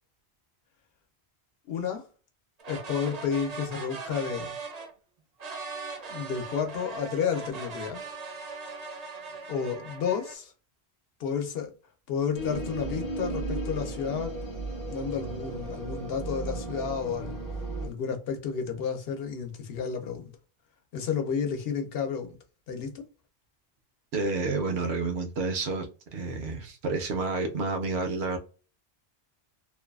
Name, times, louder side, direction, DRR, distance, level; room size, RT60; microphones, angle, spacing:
voice 1, 1.7-2.1 2.7-4.5 6.1-8.0 9.5-10.5 11.2-11.7 12.1-14.3 14.9-17.4 17.8-20.3 20.9-22.4 22.7-23.1, left 7 dB, 65° left, 0.9 m, -31 dB
sound 1, 2.6-4.9 5.4-10.4, right 4 dB, 45° right, 0.6 m, -39 dB
sound 2, 12.3-17.9, right 2 dB, 25° left, 0.5 m, -35 dB
voice 2, 24.1-28.4, right 3 dB, 75° right, 0.9 m, -30 dB
2.6 x 2.3 x 2.3 m
omnidirectional pair, 1.1 m